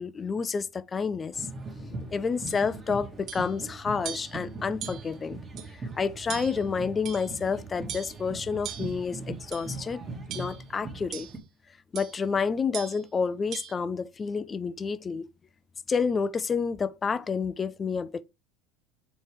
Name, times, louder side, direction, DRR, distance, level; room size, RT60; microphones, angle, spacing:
voice 1, 0.0-1.5 1.8-5.4 5.7-10.0 10.3-11.3 11.9-15.3 15.9-18.2, left 5 dB, 15° left, 0.3 m, -29 dB
sound 1, 1.3-11.4, right 3 dB, 15° right, 1.2 m, -40 dB
sound 2, 2.5-2.6 3.3-3.5 4.0-4.4 4.8-5.2 5.6-5.7 6.3-6.7 7.0-7.4 7.9-8.2 8.6-9.0 9.5-9.8 10.3-10.7 11.1-11.4 11.9-12.2 12.7-13.0 13.5-13.7, right 9 dB, 35° right, 0.7 m, -40 dB
7.3 x 4.4 x 3.1 m
cardioid pair, 165°, 0 cm